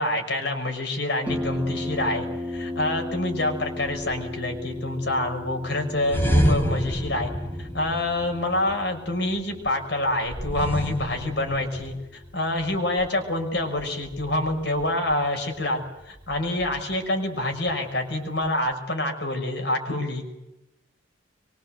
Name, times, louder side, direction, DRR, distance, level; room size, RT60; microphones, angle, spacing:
voice 1, 0.0-7.3 7.6-20.3, left 1 dB, 65° left, 4 dB, 5.9 m, -27 dB
Harp, 1.3-18.7, left 1 dB, 10° right, 2.2 m, -38 dB
sound 1, 6.1-8.7 10.3-12.0, equal, 10° left, 3.5 m, -26 dB
24.5 x 24.5 x 7.9 m, 0.93 s
head